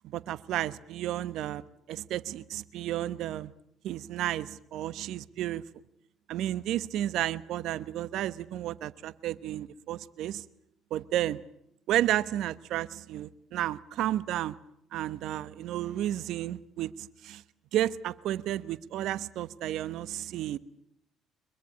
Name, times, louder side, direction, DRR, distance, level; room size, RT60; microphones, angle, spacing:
voice 1, 0.0-3.5 3.8-5.6 6.3-10.4 10.9-11.4 11.9-14.6 14.9-17.4 17.7-20.6, right 12 dB, 65° right, 1.1 m, -32 dB
24.0 x 22.0 x 9.7 m
hypercardioid pair, 60°, 0 cm